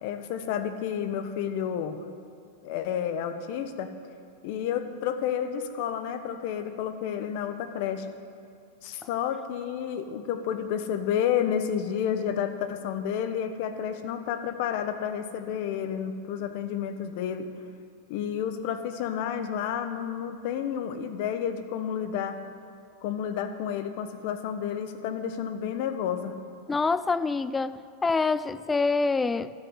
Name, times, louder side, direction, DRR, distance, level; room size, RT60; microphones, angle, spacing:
voice 1, 0.0-2.0 2.6-3.9 4.4-8.1 8.8-17.5 18.1-22.4 23.0-26.3, left 8 dB, 60° left, 9 dB, 1.1 m, -30 dB
voice 2, 26.7-29.5, left 4 dB, 15° left, 15 dB, 0.3 m, -26 dB
13.0 x 6.3 x 8.2 m, 2.5 s
hypercardioid pair, 120°, 0 cm